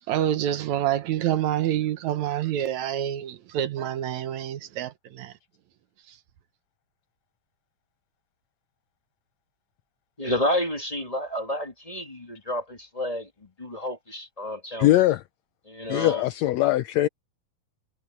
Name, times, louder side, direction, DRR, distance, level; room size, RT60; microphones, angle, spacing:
voice 1, 0.1-5.3, right 11 dB, 70° right, 2.2 m, -27 dB
voice 2, 10.2-14.9 15.7-16.3, left 1 dB, 15° left, 1.7 m, -30 dB
voice 3, 14.8-15.2 15.9-17.1, left 15 dB, 80° left, 1.6 m, -21 dB
omnidirectional pair, 3.5 m